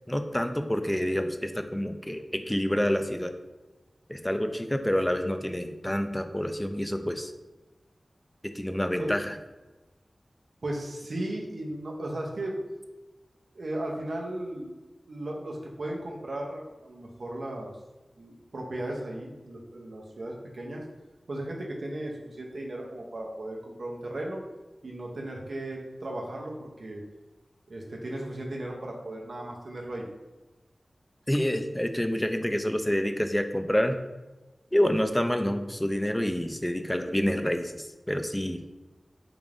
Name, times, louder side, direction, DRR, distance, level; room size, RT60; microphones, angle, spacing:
voice 1, 0.1-3.3 4.1-7.3 8.4-9.3 31.3-34.0 34.7-38.6, equal, 10° left, 7 dB, 0.3 m, -28 dB
voice 2, 10.6-12.6 13.5-14.7 15.1-17.8 18.2-20.8 21.3-24.4 24.8-27.0 27.7-30.1, right 1 dB, 80° right, -1 dB, 0.6 m, -36 dB
3.7 x 2.4 x 3.3 m, 1.1 s
wide cardioid pair, 60°, 0 cm